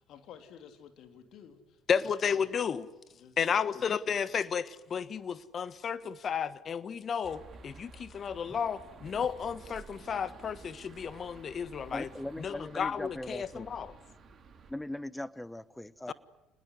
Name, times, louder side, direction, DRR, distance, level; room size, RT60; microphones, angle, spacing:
voice 1, 0.0-2.5 3.1-3.8 4.0-4.3, left 8 dB, 60° left, 3.4 m, -53 dB
voice 2, 1.9-2.9 3.4-12.1 12.4-13.9 16.1-16.2, left 7 dB, 40° left, 1.5 m, -32 dB
sound 1, 7.2-14.7, right 4 dB, 40° right, 4.8 m, -52 dB
voice 3, 11.9-13.7 14.7-16.1, left 1 dB, 5° left, 1.2 m, -40 dB
28.5 x 20.5 x 9.7 m
hypercardioid pair, 60°, 0 cm